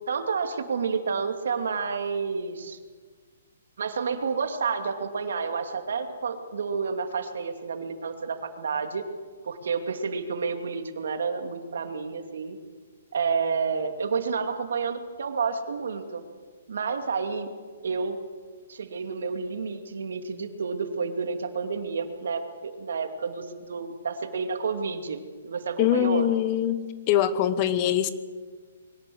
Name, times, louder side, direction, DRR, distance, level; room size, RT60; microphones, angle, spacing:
voice 1, 0.1-2.8 3.8-9.0 9.4-12.6 13.1-16.2 16.7-17.5 17.8-18.2 18.7-26.3, right 5 dB, 75° right, 6 dB, 2.6 m, -30 dB
voice 2, 25.8-26.8 27.1-28.1, left 11 dB, 30° left, 13 dB, 1.1 m, -23 dB
22.5 x 18.0 x 7.9 m, 1.5 s
hypercardioid pair, 165°, 0 cm